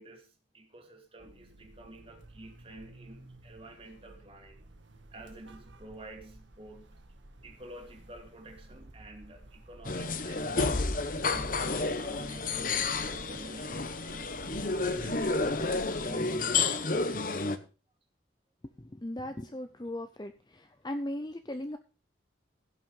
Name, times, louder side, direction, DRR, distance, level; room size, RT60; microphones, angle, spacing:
voice 1, 0.0-4.7 5.1-7.0 7.4-10.7 11.3-14.4 14.9-17.1, right 2 dB, 30° right, 2.4 m, -49 dB
sound 1, 1.2-16.1, right 1 dB, 80° right, 1.8 m, -52 dB
sound 2, 9.9-17.6, left 3 dB, 45° left, 1.0 m, -30 dB
voice 2, 18.9-21.8, left 1 dB, 20° left, 0.6 m, -38 dB
16.0 x 6.2 x 5.4 m
head